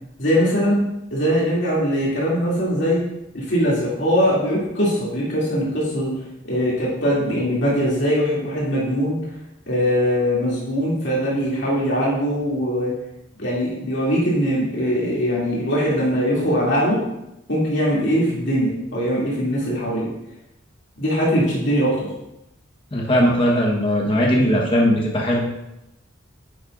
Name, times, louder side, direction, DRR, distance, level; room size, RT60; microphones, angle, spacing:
voice 1, 0.2-0.8 1.1-3.0 3.3-6.2 6.4-9.2 9.7-12.9 13.4-17.0 17.5-20.1 21.0-22.1, equal, 60° left, -6 dB, 2.8 m, -21 dB
voice 2, 22.9-25.4, equal, 25° left, -2 dB, 1.2 m, -19 dB
11.0 x 8.6 x 2.6 m, 0.87 s
head